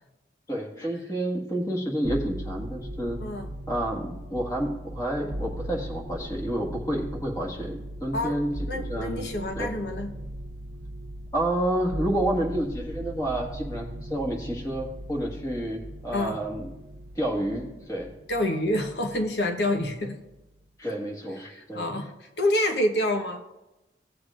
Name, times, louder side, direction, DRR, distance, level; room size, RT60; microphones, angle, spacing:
voice 1, 0.5-3.2 3.7-9.3 9.6-9.7 11.3-16.7 17.1-18.1 20.8-21.9, right 1 dB, 20° left, -1 dB, 1.6 m, -29 dB
sound 1, 2.0-19.5 19.8-20.6, right 1 dB, 90° right, 0.9 m, -38 dB
voice 2, 8.7-10.1 16.1-16.4 18.3-20.2 21.5-23.4, left 1 dB, 80° left, 5 dB, 1.0 m, -27 dB
17.0 x 7.9 x 2.5 m, 0.99 s
head